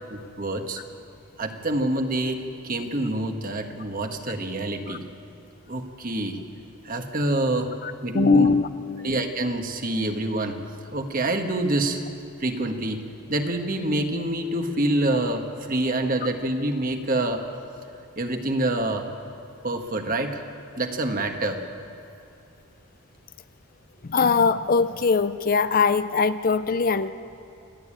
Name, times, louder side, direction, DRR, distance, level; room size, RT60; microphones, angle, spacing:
voice 1, 0.1-0.8 1.4-5.0 5.7-6.4 6.8-7.7 8.0-8.5 9.0-10.6 10.9-12.0 12.4-13.0 13.3-17.5 18.2-19.1 19.6-20.4 20.8-21.6, right 1 dB, 40° right, 5 dB, 1.4 m, -26 dB
voice 2, 7.8-9.1 24.0-27.1, left 4 dB, 40° left, 12 dB, 0.5 m, -22 dB
27.5 x 9.6 x 9.9 m, 2.8 s
head